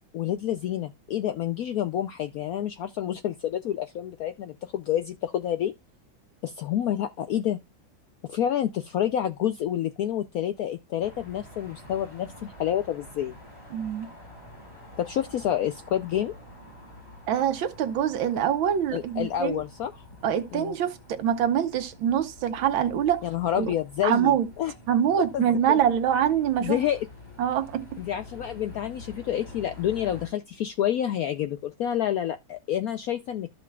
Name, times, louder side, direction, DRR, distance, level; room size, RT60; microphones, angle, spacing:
voice 1, 0.1-5.7 6.4-7.6 8.3-13.4 15.0-16.3 18.9-19.9 20.5-20.7 23.2-24.7 25.2-25.5 26.6-27.1 28.0-33.5, left 10 dB, 75° left, 0.8 m, -28 dB
sound 1, 11.0-30.3, left 2 dB, 15° left, 3.5 m, -47 dB
voice 2, 13.7-14.1 17.3-19.6 20.2-23.2 23.6-23.7 24.0-24.5 24.9-26.8 27.4-28.0, right 9 dB, 85° right, 1.7 m, -24 dB
14.0 x 5.3 x 2.3 m
omnidirectional pair, 2.1 m